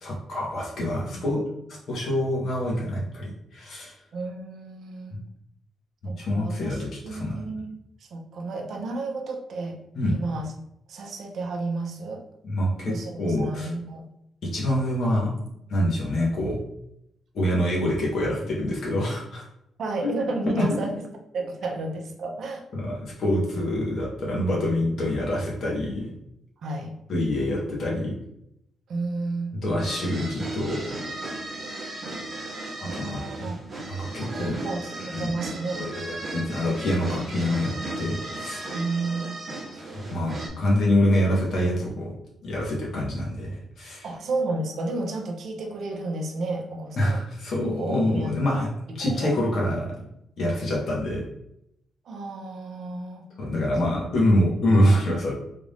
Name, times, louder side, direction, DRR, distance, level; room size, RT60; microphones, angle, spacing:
voice 1, 0.0-1.4 1.9-3.9 6.2-7.3 10.0-10.2 12.4-13.7 14.4-15.3 15.7-16.6 17.3-19.5 20.6-20.7 22.7-26.1 27.1-28.1 29.6-30.8 32.8-33.3 33.9-34.6 35.1-35.3 35.8-38.7 39.8-42.1 42.4-44.0 47.0-48.7 48.9-49.9 50.4-51.2 53.4-55.4, left 1 dB, 45° left, -3 dB, 1.1 m, -25 dB
voice 2, 0.8-1.3 4.1-5.2 6.0-7.7 8.0-9.8 10.1-10.5 10.9-12.2 12.8-14.1 19.8-20.9 21.3-22.6 26.6-26.9 28.9-29.5 32.8-33.7 34.2-35.9 38.7-39.4 44.0-47.2 47.8-48.6 48.9-49.3 52.0-53.3, right 2 dB, 50° right, 2 dB, 0.6 m, -32 dB
sound 1, 29.8-40.5, right 2 dB, 30° right, 0.9 m, -36 dB
3.6 x 2.5 x 3.4 m, 0.78 s
cardioid pair, 180°, 0 cm